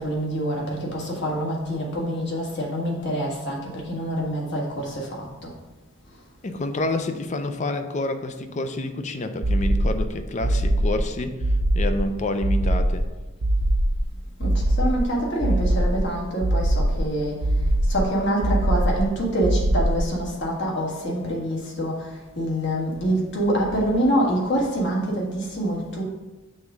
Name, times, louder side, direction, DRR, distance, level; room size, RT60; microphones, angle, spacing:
voice 1, 0.0-5.5 6.1-6.2 14.4-26.0, right 1 dB, 55° left, -2 dB, 1.5 m, -26 dB
voice 2, 6.4-11.3 11.7-13.1, left 2 dB, 35° left, 8 dB, 0.4 m, -28 dB
sound 1, 9.4-10.1 10.4-11.1 11.4-12.0 12.4-13.1 13.4-14.0 14.4-15.1 15.4-16.0 16.4-17.1 17.4-18.1 18.4-19.1 19.4-20.1, right 1 dB, 75° right, 0.7 m, -21 dB
6.3 x 3.5 x 4.9 m, 1.1 s
head